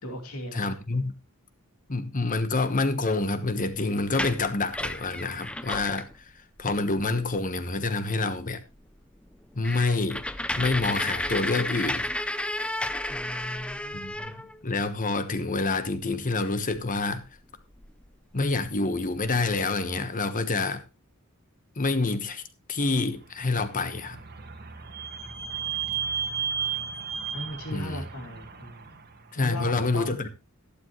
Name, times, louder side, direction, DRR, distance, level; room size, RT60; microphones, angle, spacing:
voice 1, 0.0-0.7 13.1-14.5 27.3-29.0 29.3-30.2, left 1 dB, 85° left, 2.8 m, -38 dB
voice 2, 0.5-1.1 1.9-6.1 6.6-8.6 9.6-10.2 10.6-12.1 13.9-14.3 14.6-17.2 18.3-20.8 21.8-22.4 22.7-24.2 27.7-28.0 29.3-30.3, left 3 dB, 40° left, 1.2 m, -27 dB
sound 1, 4.0-6.1 6.6-6.7 7.0-7.4 7.9-8.0 8.4-8.5 8.8-8.9 9.3-14.9 16.3-16.4 16.7-18.1 18.6-18.7 19.0-19.6, left 1 dB, 5° left, 0.5 m, -32 dB
Vehicle / Squeak, 23.5-29.1, right 7 dB, 50° right, 1.6 m, -34 dB
12.0 x 12.0 x 3.1 m
head